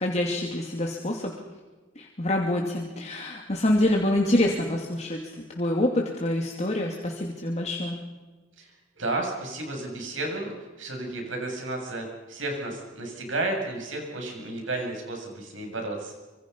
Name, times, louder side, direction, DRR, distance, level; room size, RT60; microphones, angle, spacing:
voice 1, 0.0-1.3 2.0-8.0, left 1 dB, 35° left, 0 dB, 2.8 m, -26 dB
voice 2, 8.6-16.1, right 2 dB, 90° right, 1 dB, 7.7 m, -32 dB
26.0 x 25.5 x 5.6 m, 1.3 s
head